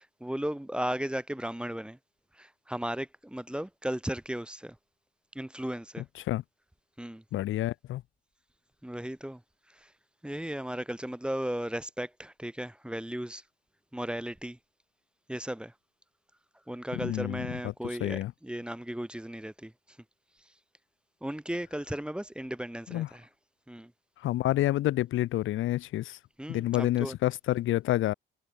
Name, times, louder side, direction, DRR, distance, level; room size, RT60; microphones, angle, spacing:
voice 1, 0.2-2.0 2.7-4.7 5.4-6.0 7.0-7.2 8.8-9.4 10.2-13.4 13.9-14.6 15.3-15.7 16.7-19.7 21.2-23.0 23.7-23.9 26.4-27.1, right 1 dB, 5° right, 1.8 m, -35 dB
voice 2, 6.0-6.4 7.3-8.0 16.9-18.3 22.9-23.1 24.2-26.2 26.5-28.1, left 14 dB, 80° left, 1.2 m, -29 dB
cardioid pair, 90°, 20 cm